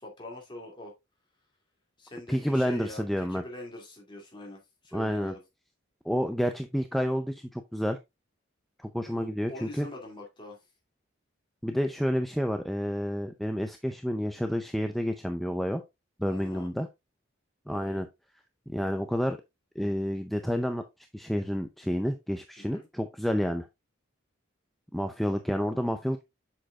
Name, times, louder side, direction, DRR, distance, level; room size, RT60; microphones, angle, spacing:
voice 1, 0.0-0.9 2.0-5.4 9.1-10.6 16.3-16.7 17.7-18.0 22.6-22.9, left 1 dB, 25° left, 2.5 m, -44 dB
voice 2, 2.3-3.4 4.9-5.3 6.0-8.0 8.8-9.9 11.6-15.8 16.2-16.9 17.7-18.1 18.7-19.4 19.8-20.8 21.1-23.7 24.9-26.2, equal, ahead, 0.5 m, -29 dB
7.6 x 6.5 x 2.4 m
head